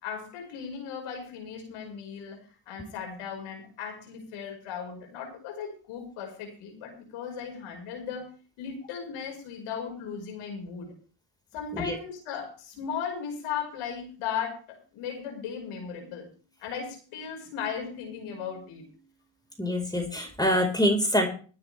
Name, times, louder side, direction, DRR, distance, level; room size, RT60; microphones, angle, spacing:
voice 1, 0.0-2.4 2.7-8.3 8.6-10.9 11.5-16.3 16.6-19.0, left 7 dB, 85° left, 2 dB, 5.3 m, -37 dB
voice 2, 19.6-21.3, equal, 10° left, 3 dB, 4.7 m, -25 dB
21.0 x 10.0 x 3.4 m, 0.38 s
supercardioid pair, 70°, 49 cm